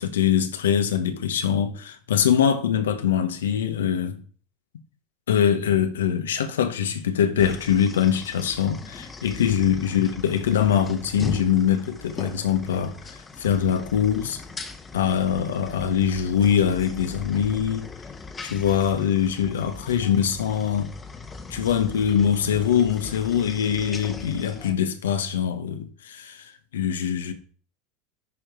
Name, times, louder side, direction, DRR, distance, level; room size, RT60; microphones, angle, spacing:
voice 1, 0.0-4.2 5.3-14.4 14.9-17.9 18.4-20.9 21.5-27.3, left 8 dB, 80° left, 1.0 m, -23 dB
sound 1, 7.4-24.7, left 3 dB, 20° left, 1.2 m, -40 dB
9.8 x 4.5 x 5.0 m
hypercardioid pair, 85°, 0 cm